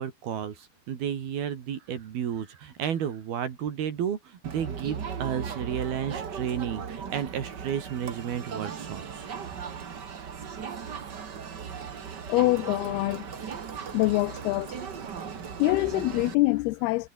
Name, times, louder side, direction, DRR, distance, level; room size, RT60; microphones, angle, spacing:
voice 1, 0.0-9.3 9.7-9.8 10.4-10.5 10.9-11.2 13.6-13.9, right 9 dB, 70° right, 4.3 m, -32 dB
Crowd, 4.4-16.3, right 6 dB, 45° right, 1.4 m, -37 dB
voice 2, 12.3-13.3 13.9-14.8 15.6-17.1, left 21 dB, 80° left, 2.6 m, -25 dB
omnidirectional pair, 4.6 m